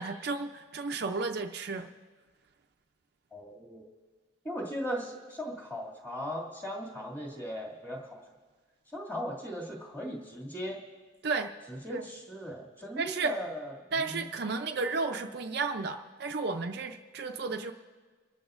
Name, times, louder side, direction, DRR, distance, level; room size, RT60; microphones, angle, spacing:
voice 1, 0.0-1.9 11.2-11.5 11.9-12.1 13.0-13.3 13.9-17.7, right 4 dB, 50° right, 5 dB, 0.5 m, -33 dB
voice 2, 3.3-3.8 4.4-8.2 8.9-10.8 11.7-14.3, equal, 10° left, -2 dB, 2.2 m, -38 dB
25.0 x 13.5 x 2.5 m, 1.4 s
head